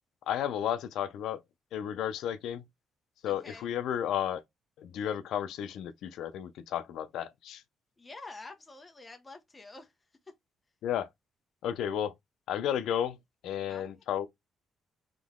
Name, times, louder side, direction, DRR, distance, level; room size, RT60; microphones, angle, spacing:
voice 1, 0.3-1.4 1.7-2.6 3.2-4.4 4.8-7.6 10.8-11.1 11.6-12.1 12.5-13.2 13.4-14.3, left 10 dB, 75° left, 0.5 m, -32 dB
voice 2, 3.2-3.7 8.0-9.9 10.3-10.4 13.7-13.9, left 3 dB, 15° left, 0.8 m, -48 dB
3.7 x 3.0 x 3.6 m
cardioid pair, 160°, 0 cm